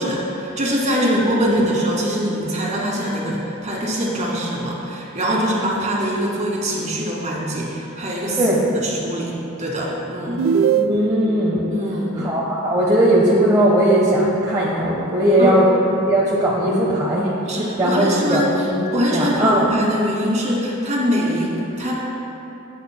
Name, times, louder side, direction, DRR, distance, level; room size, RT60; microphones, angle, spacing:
voice 1, 0.0-10.5 11.7-12.3 15.4-15.5 17.5-18.7 18.9-21.9, equal, 35° right, -4 dB, 2.0 m, -23 dB
voice 2, 0.9-1.6 8.4-8.6 10.7-11.7 12.2-15.7 16.1-18.8 19.1-19.7, right 1 dB, 20° right, -7 dB, 1.1 m, -18 dB
sound 1, 10.4-11.4, right 7 dB, 65° right, 0.3 m, -20 dB
16.0 x 9.2 x 2.2 m, 3.0 s
head